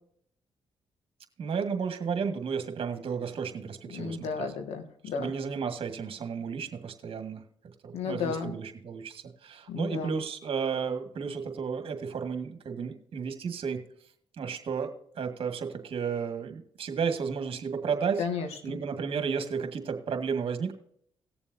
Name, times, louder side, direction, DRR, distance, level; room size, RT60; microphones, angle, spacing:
voice 1, 1.4-4.5 5.2-7.4 7.8-13.8 14.4-18.3 18.6-20.7, right 6 dB, 60° right, 6 dB, 1.9 m, -33 dB
voice 2, 3.9-5.3 7.9-8.5 9.7-10.2 18.2-18.8, left 5 dB, 85° left, 6 dB, 1.8 m, -33 dB
18.5 x 7.2 x 2.7 m, 0.66 s
cardioid pair, 70°, 10 cm